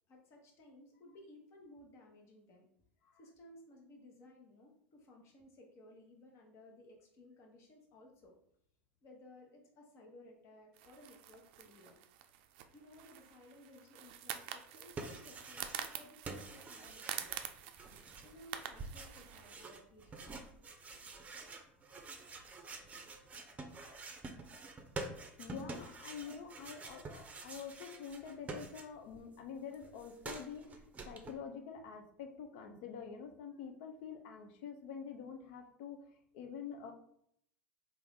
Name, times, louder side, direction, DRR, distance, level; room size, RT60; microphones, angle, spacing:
voice 1, 0.1-2.7 3.2-8.4 9.0-12.0 12.7-17.3 18.2-20.3, left 1 dB, 50° left, 1 dB, 1.1 m, -58 dB
sound 1, 10.7-19.6, right 10 dB, 65° right, 0.4 m, -47 dB
sound 2, 14.6-16.0 16.2-29.2 29.5-31.3, right 3 dB, 25° right, 0.6 m, -48 dB
voice 2, 25.4-36.1 36.3-36.9, left 7 dB, 65° left, 5 dB, 0.6 m, -47 dB
3.4 x 2.6 x 3.6 m, 0.70 s
hypercardioid pair, 85°, 6 cm